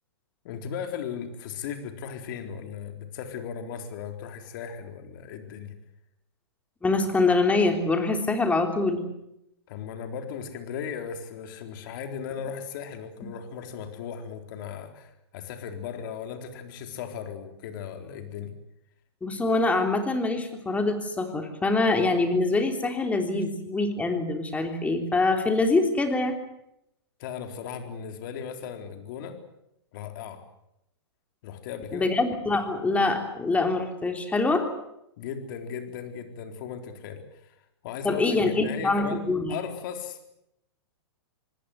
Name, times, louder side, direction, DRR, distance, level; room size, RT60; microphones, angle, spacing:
voice 1, 0.4-5.7 9.7-18.5 27.2-29.4 29.9-30.4 31.4-32.1 35.2-37.5 37.8-39.2 39.5-40.3, left 7 dB, 50° left, 6 dB, 4.0 m, -37 dB
voice 2, 6.8-9.0 19.2-26.4 31.9-34.7 38.0-39.5, left 3 dB, 10° left, 5 dB, 3.4 m, -24 dB
26.0 x 20.0 x 8.2 m, 0.81 s
hypercardioid pair, 130°, 14 cm